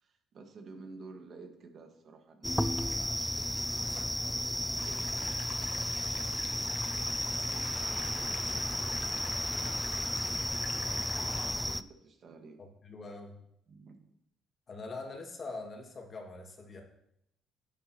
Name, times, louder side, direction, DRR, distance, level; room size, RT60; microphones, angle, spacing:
voice 1, 0.0-6.7 7.3-10.3 11.2-12.6 13.7-14.0, right 4 dB, 55° right, 4 dB, 1.6 m, -53 dB
sound 1, 2.4-11.8, equal, 5° left, 0.4 m, -33 dB
sound 2, 4.8-11.5, left 7 dB, 75° left, 1.0 m, -47 dB
voice 2, 12.6-13.4 14.7-16.8, left 3 dB, 40° left, 1 dB, 2.1 m, -43 dB
10.5 x 9.2 x 3.0 m, 0.77 s
cardioid pair, 90°, 0 cm